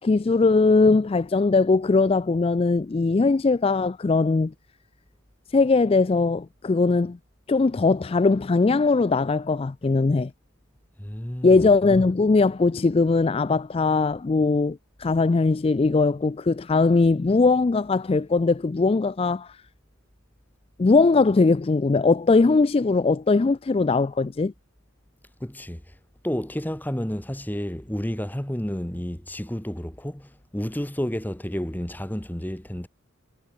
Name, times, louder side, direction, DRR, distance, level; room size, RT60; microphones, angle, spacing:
voice 1, 0.0-4.5 5.5-7.2 7.5-10.3 11.4-19.6 20.8-24.5, left 3 dB, 25° left, 0.3 m, -20 dB
voice 2, 11.0-11.6 25.4-25.8 26.2-32.9, equal, 10° left, 1.2 m, -31 dB
head